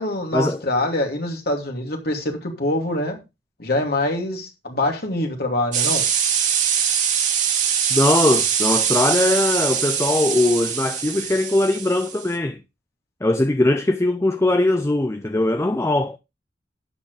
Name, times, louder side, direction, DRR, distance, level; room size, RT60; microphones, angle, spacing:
voice 1, 0.0-3.2 3.6-6.1, left 1 dB, 60° left, 2.7 m, -24 dB
sound 1, 5.7-12.4, right 8 dB, 45° right, 2.3 m, -22 dB
voice 2, 7.9-12.6 13.2-16.2, left 2 dB, 15° left, 0.5 m, -20 dB
12.0 x 8.7 x 3.3 m
head